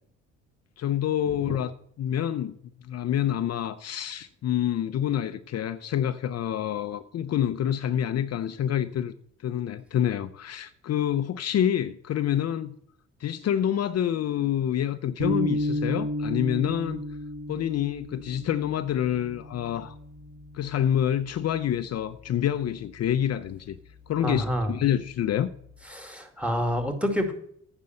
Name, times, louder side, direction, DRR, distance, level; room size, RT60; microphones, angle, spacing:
voice 1, 0.8-1.7 2.0-2.6 2.8-9.1 9.4-12.7 13.2-17.0 17.5-19.9 20.5-23.8 24.1-25.5, left 10 dB, 55° left, 0.6 m, -27 dB
sound 1, 15.2-21.6, left 1 dB, 45° right, 4.0 m, -33 dB
voice 2, 24.2-24.7 25.9-27.3, equal, 5° right, 2.2 m, -28 dB
9.5 x 5.4 x 7.7 m
cardioid pair, 90°, 30 cm